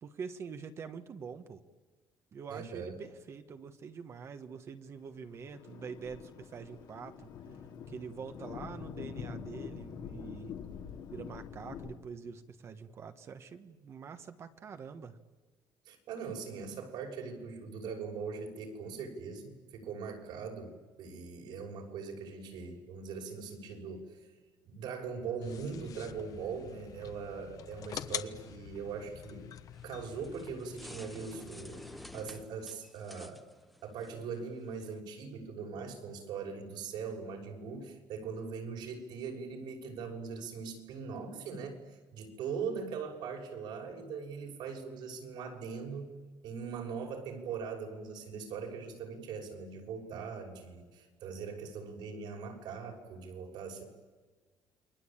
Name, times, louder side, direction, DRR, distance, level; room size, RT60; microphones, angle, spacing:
voice 1, 0.0-1.6 2.3-7.3 7.9-10.6 11.1-15.2 50.1-50.3, right 6 dB, 35° right, 8 dB, 1.3 m, -45 dB
voice 2, 2.5-3.0 15.9-24.3 24.6-29.5 29.8-31.8 32.1-33.4 33.8-41.8 42.1-46.1 46.4-53.8, right 5 dB, 80° right, 2 dB, 6.1 m, -41 dB
Thunder, 5.1-12.0, left 7 dB, 70° left, 2.8 m, -45 dB
sound 1, 25.4-32.4, left 9 dB, 50° left, 1.2 m, -46 dB
sound 2, 29.7-35.0, equal, ahead, 0.9 m, -52 dB
29.0 x 22.5 x 8.8 m, 1.3 s
cardioid pair, 170°, 7 cm